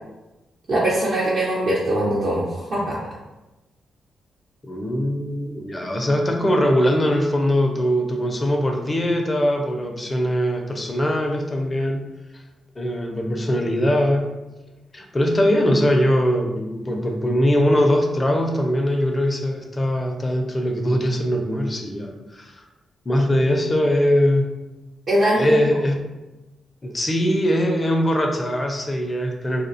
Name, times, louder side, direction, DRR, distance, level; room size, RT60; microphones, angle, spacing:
voice 1, 0.7-3.0 25.1-25.4, right 1 dB, 60° right, -8 dB, 0.6 m, -21 dB
voice 2, 4.6-12.1 12.8-14.3 14.9-22.6 23.1-24.5 25.3-26.0 26.8-29.7, equal, 30° left, 3 dB, 0.5 m, -21 dB
2.3 x 2.1 x 2.6 m, 1.0 s
supercardioid pair, 50°, 0 cm